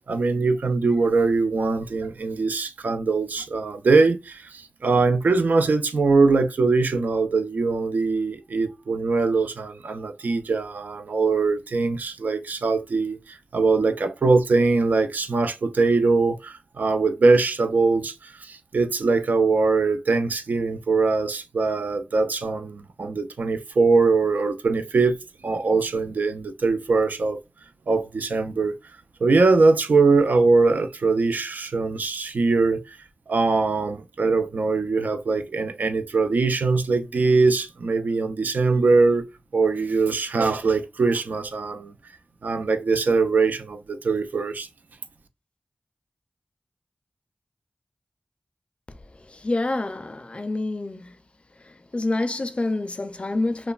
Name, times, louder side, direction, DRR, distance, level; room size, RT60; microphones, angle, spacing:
voice 1, 0.1-25.2 25.4-27.4 27.9-28.7 29.2-33.0 33.3-39.3 39.5-41.9 42.4-44.7, right 3 dB, 85° right, 0.3 m, -22 dB
voice 2, 49.3-51.1 51.7-53.7, left 2 dB, 45° left, 0.4 m, -27 dB
3.0 x 2.1 x 2.3 m
wide cardioid pair, 55°, 3 cm